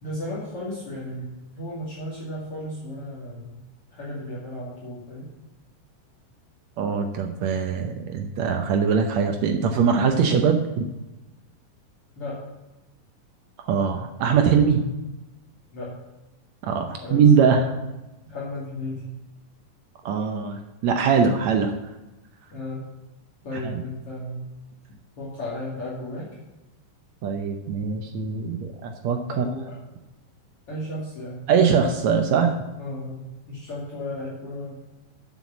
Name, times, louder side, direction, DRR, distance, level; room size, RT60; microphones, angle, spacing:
voice 1, 0.0-1.3 1.5-3.6 3.9-5.3 12.2-12.4 15.7-16.0 17.0-17.2 18.3-19.1 22.5-22.9 23.4-24.4 25.2-26.3 29.3-29.8 30.7-31.4 32.8-34.7, left 1 dB, 45° left, -7 dB, 2.9 m, -34 dB
voice 2, 6.8-10.9 13.6-14.8 16.6-17.8 20.0-21.7 23.7-23.8 27.2-29.5 31.5-32.5, right 6 dB, 75° right, 4 dB, 1.7 m, -22 dB
7.8 x 7.8 x 7.2 m, 1.0 s
omnidirectional pair, 4.0 m